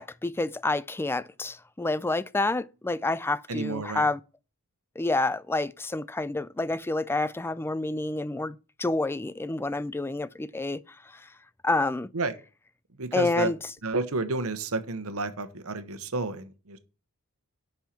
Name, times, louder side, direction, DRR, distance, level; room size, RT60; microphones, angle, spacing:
voice 1, 0.0-4.2 5.0-10.8 11.0-11.3 11.6-12.1 13.1-13.6, left 2 dB, 10° left, 0.4 m, -28 dB
voice 2, 3.5-4.0 12.1-12.4 13.0-13.5 13.8-16.8, right 3 dB, 70° right, 1.1 m, -31 dB
7.3 x 5.5 x 7.4 m
head